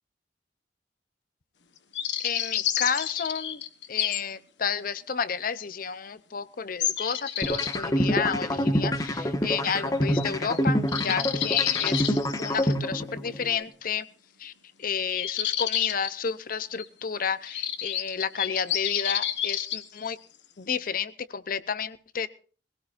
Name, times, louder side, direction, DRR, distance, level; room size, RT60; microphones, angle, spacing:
sound 1, 1.9-4.2 4.7-4.8 5.6-5.7 6.8-7.8 10.1-10.3 10.5-10.6 10.9-12.7 15.0-16.1 16.8-16.9 17.5-19.8, left 11 dB, 85° left, 1.3 m, -30 dB
voice 1, 2.2-3.6 3.9-14.1 14.4-14.5 14.8-20.2 20.6-22.3, left 6 dB, 50° left, 14 dB, 0.7 m, -31 dB
sound 2, 7.4-13.4, equal, 20° left, 1.5 m, -26 dB
sound 3, 8.6-13.6, left 1 dB, 5° right, 7.3 m, -47 dB
22.0 x 17.0 x 2.5 m, 0.40 s
head